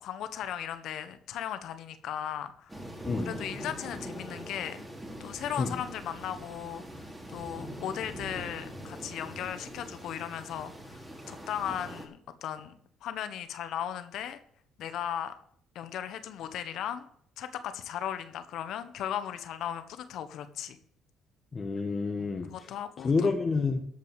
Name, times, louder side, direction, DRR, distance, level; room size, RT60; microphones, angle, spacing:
voice 1, 0.0-2.8 3.2-4.8 5.2-12.8 13.0-14.4 14.8-15.3 15.7-17.1 17.4-20.8 22.2-23.3, left 10 dB, 70° left, 10 dB, 1.3 m, -37 dB
sound 1, 2.7-12.1, equal, 10° right, 3.3 m, -43 dB
voice 2, 21.5-22.7 23.0-23.8, left 4 dB, 35° left, 2 dB, 1.7 m, -29 dB
14.0 x 5.5 x 8.2 m, 0.65 s
supercardioid pair, 65°, 0 cm